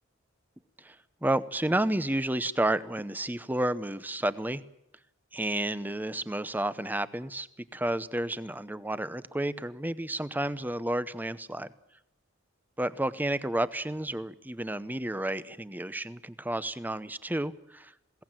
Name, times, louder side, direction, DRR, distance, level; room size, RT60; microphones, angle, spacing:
voice 1, 1.2-4.6 5.3-7.5 7.7-11.7 12.8-17.9, right 1 dB, 10° right, 14 dB, 0.8 m, -31 dB
21.5 x 17.5 x 9.0 m, 0.86 s
head